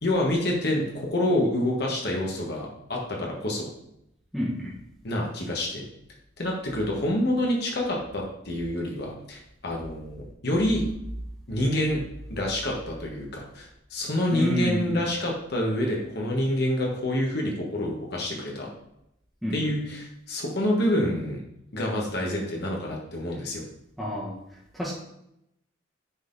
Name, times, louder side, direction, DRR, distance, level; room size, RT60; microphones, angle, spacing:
voice 1, 0.0-3.7 5.0-5.8 6.4-10.8 11.5-12.0 12.3-18.7 19.5-21.4 21.7-23.6, left 1 dB, 55° left, -1 dB, 1.4 m, -27 dB
voice 2, 4.3-4.7 14.3-15.0 19.4-19.7 24.0-24.3 24.7-24.9, equal, ahead, -7 dB, 1.3 m, -29 dB
9.6 x 4.1 x 3.9 m, 0.79 s
head